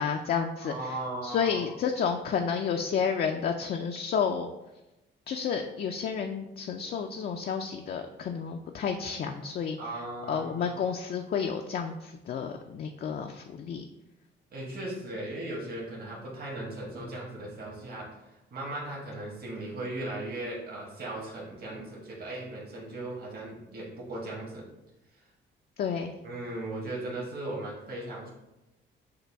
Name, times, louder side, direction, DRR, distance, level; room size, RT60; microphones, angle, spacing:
voice 1, 0.0-4.5 5.3-13.8 25.8-26.1, left 6 dB, 50° left, 4 dB, 0.4 m, -31 dB
voice 2, 0.6-1.6 9.8-10.8 14.5-24.7 26.2-28.3, right 2 dB, 50° right, -4 dB, 1.5 m, -37 dB
6.6 x 2.3 x 3.4 m, 0.97 s
cardioid pair, 90°, 20 cm